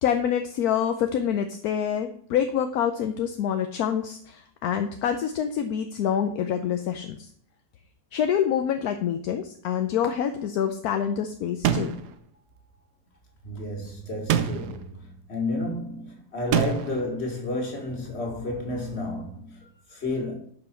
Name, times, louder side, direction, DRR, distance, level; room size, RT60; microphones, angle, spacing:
voice 1, 0.0-7.3 8.1-12.0, left 8 dB, 70° left, 1.1 m, -26 dB
sound 1, 11.6-12.1 14.3-14.8 16.5-17.0, right 9 dB, 80° right, 1.3 m, -24 dB
voice 2, 13.4-20.3, left 2 dB, 40° left, 2.3 m, -31 dB
11.0 x 5.8 x 4.5 m
omnidirectional pair, 1.7 m